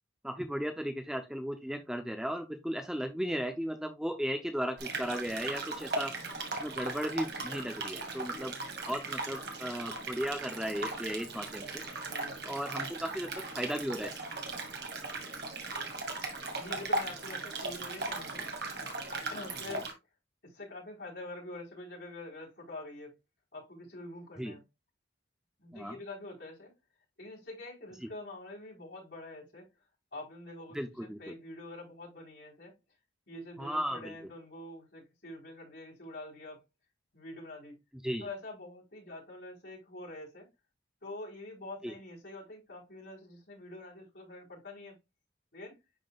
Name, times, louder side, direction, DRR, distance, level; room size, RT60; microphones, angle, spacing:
voice 1, 0.2-6.1 6.5-8.5 8.9-11.8 12.4-14.1 19.7-19.8 24.4-24.5 25.7-25.9 30.7-31.3 33.6-34.1 38.0-38.3 41.8-41.9, equal, 5° right, 0.6 m, -36 dB
sound 1, 4.8-19.9, right 3 dB, 60° right, 1.8 m, -38 dB
voice 2, 8.2-8.6 11.5-11.7 12.0-12.4 16.5-18.5 19.1-19.9 20.4-23.1 23.5-24.6 25.6-26.7 27.2-29.7 30.1-32.7 33.3-36.6 37.1-37.8 38.2-40.5 41.0-45.0 45.5-45.8, left 2 dB, 70° left, 4.1 m, -46 dB
10.5 x 3.7 x 2.4 m
head